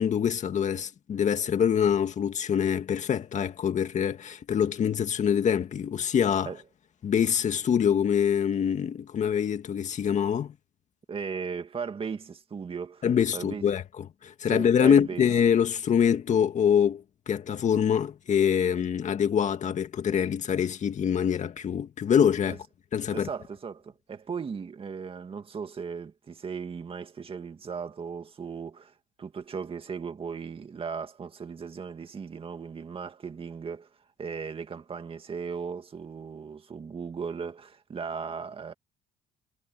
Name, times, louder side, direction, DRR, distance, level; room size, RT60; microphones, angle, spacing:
voice 1, 0.0-6.5 7.0-10.5 13.0-22.6 22.9-23.3, left 8 dB, 45° left, 2.0 m, -25 dB
voice 2, 11.1-13.1 13.3-13.6 14.4-15.3 22.5-22.6 23.1-33.9 34.2-38.7, right 6 dB, 35° right, 2.3 m, -37 dB
cardioid pair, 110°, 17 cm